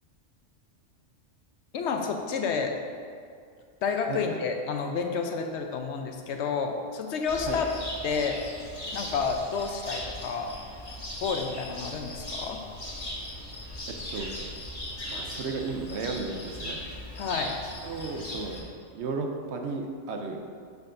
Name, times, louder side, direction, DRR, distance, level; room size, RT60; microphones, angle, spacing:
voice 1, 1.7-2.8 3.8-7.7 8.0-8.4 8.9-10.5 11.2-12.6 17.2-17.5, left 5 dB, 70° left, 4 dB, 0.8 m, -30 dB
voice 2, 4.1-4.4 7.5-7.6 13.9-14.3 15.1-16.8 17.6-18.6 18.9-20.4, right 4 dB, 65° right, 3 dB, 0.8 m, -34 dB
Cricket, 7.3-18.6, left 1 dB, 30° left, 1.5 m, -38 dB
7.0 x 6.2 x 2.6 m, 2.2 s
omnidirectional pair, 1.3 m